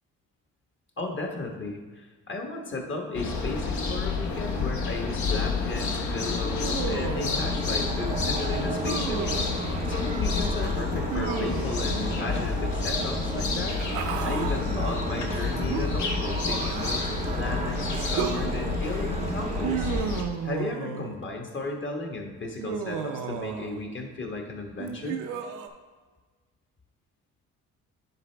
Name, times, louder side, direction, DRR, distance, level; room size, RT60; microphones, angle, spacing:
voice 1, 1.0-9.3 9.9-13.8 14.2-19.9 20.4-25.2, left 2 dB, 40° left, 2 dB, 1.3 m, -34 dB
sound 1, 3.1-20.2, left 4 dB, 70° left, 1.1 m, -29 dB
sound 2, 6.5-20.0, right 4 dB, 20° right, 0.5 m, -35 dB
Human voice, 6.6-7.4 8.8-9.5 11.1-11.9 13.5-14.6 15.7-17.2 17.9-18.5 19.6-21.2 22.6-23.8 24.8-25.7, right 7 dB, 90° right, 0.6 m, -33 dB
9.8 x 4.1 x 3.4 m, 1.4 s
cardioid pair, 90°, 30 cm